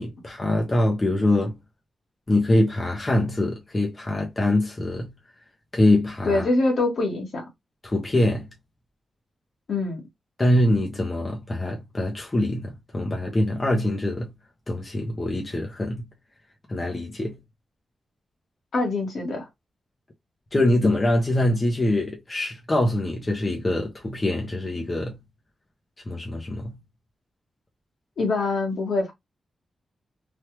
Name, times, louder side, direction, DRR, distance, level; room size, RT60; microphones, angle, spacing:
voice 1, 0.0-1.6 2.3-5.1 5.7-6.4 7.8-8.5 10.4-14.3 14.7-16.1 16.7-17.4 20.5-25.2 26.1-26.8, left 1 dB, 25° left, 0.6 m, -24 dB
voice 2, 6.2-7.4 9.7-10.0 18.7-19.5 28.2-29.1, left 2 dB, 60° left, 1.3 m, -24 dB
3.2 x 2.3 x 2.8 m
wide cardioid pair, 155°, 0 cm